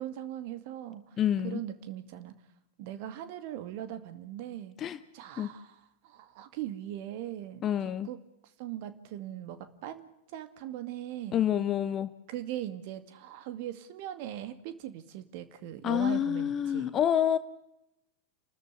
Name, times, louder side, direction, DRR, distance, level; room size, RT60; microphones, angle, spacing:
voice 1, 0.0-2.3 2.8-4.8 5.1-8.2 8.6-11.4 12.3-16.9, right 12 dB, 45° right, 11 dB, 2.2 m, -40 dB
voice 2, 1.2-1.6 4.8-5.0 5.4-5.5 7.6-8.1 11.3-12.1 15.8-17.4, left 10 dB, 30° left, 12 dB, 1.0 m, -27 dB
29.5 x 13.5 x 8.2 m, 0.85 s
figure-of-eight pair, 90°, 0 cm